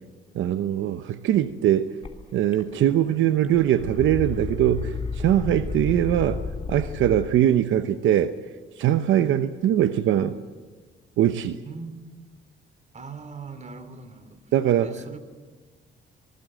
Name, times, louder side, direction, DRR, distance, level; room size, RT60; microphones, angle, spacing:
voice 1, 0.3-1.9 2.3-6.4 6.7-8.3 8.8-10.4 11.2-11.6 14.5-14.9, right 11 dB, 75° right, 0.9 m, -22 dB
sound 1, 2.0-2.1 2.5-3.1 3.4-7.3, left 4 dB, 30° left, 3.1 m, -32 dB
voice 2, 11.6-12.0 12.9-14.5 14.8-15.2, right 4 dB, 35° right, 3.0 m, -40 dB
26.0 x 21.0 x 7.6 m
cardioid pair, 90°, 20 cm